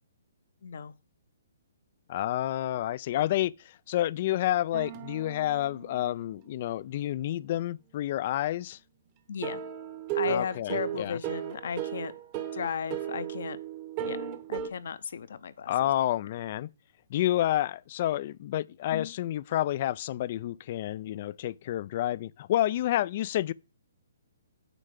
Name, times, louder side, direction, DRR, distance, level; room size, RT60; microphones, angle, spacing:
voice 1, 0.6-0.9 9.3-9.6 10.1-12.1 12.5-13.6 14.0-14.2 14.5-15.7 18.9-19.1, left 7 dB, 65° left, 0.8 m, -35 dB
voice 2, 2.1-8.8 10.3-11.2 15.7-16.7 17.1-23.5, left 13 dB, 45° left, 0.3 m, -29 dB
sound 1, 4.7-6.6 9.4-14.7, right 10 dB, 35° right, 1.0 m, -36 dB
9.0 x 3.3 x 6.6 m
hypercardioid pair, 150°, 0 cm